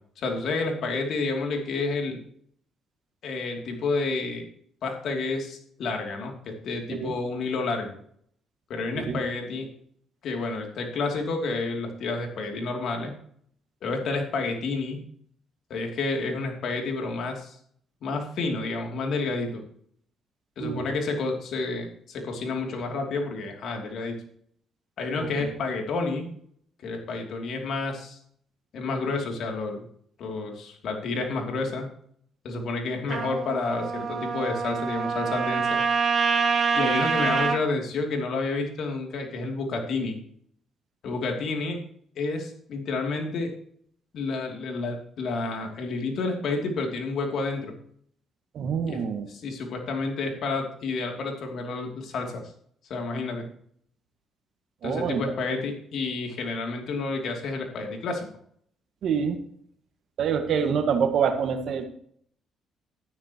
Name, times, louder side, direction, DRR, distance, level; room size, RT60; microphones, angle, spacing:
voice 1, 0.2-2.2 3.2-4.4 4.8-7.9 8.7-9.7 10.2-13.1 13.8-15.0 15.7-17.6 18.0-19.6 20.6-24.2 25.0-26.3 26.8-28.2 28.7-29.9 30.2-31.9 32.4-35.8 36.7-40.2 41.0-41.8 42.1-43.5 44.1-47.7 48.9-49.0 49.3-52.4 52.9-53.4 54.8-58.3, left 3 dB, 70° left, 3 dB, 2.8 m, -30 dB
voice 2, 25.2-25.5 48.5-49.3 54.8-55.2 59.0-59.4 60.2-61.8, right 7 dB, 70° right, 7 dB, 1.7 m, -26 dB
Trumpet, 33.1-37.6, right 5 dB, 45° right, 2.9 m, -26 dB
12.5 x 10.5 x 3.0 m, 0.63 s
supercardioid pair, 65°, 0 cm